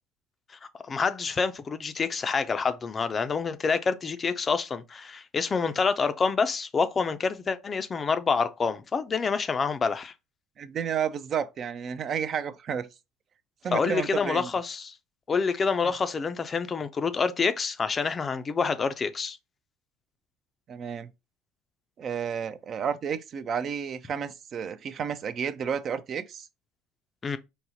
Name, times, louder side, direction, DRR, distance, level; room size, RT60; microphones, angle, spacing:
voice 1, 0.9-10.1 13.7-14.9 15.3-19.4 27.2-27.4, left 5 dB, 30° left, 0.4 m, -27 dB
voice 2, 10.6-12.9 13.6-14.5 20.7-21.1 22.0-26.5, right 7 dB, 45° right, 0.3 m, -31 dB
3.9 x 2.1 x 2.8 m
hypercardioid pair, 75°, 0 cm